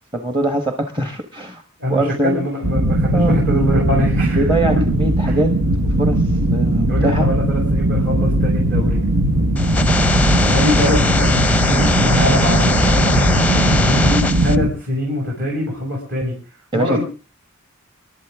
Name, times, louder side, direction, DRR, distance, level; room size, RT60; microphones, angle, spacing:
voice 1, 0.1-1.6 1.9-2.4 3.1-3.4 4.3-5.5 6.0-7.3 10.4-10.6 16.7-17.0, right 1 dB, 20° right, 5 dB, 1.4 m, -22 dB
voice 2, 1.8-4.5 5.2-5.4 6.9-9.0 10.4-16.4 16.7-17.0, left 1 dB, 55° right, -2 dB, 6.6 m, -23 dB
sound 1, 2.6-14.7, right 1 dB, 80° right, 1.5 m, -18 dB
sound 2, 9.6-14.6, left 2 dB, 5° left, 0.7 m, -19 dB
27.5 x 12.0 x 3.7 m, 0.35 s
head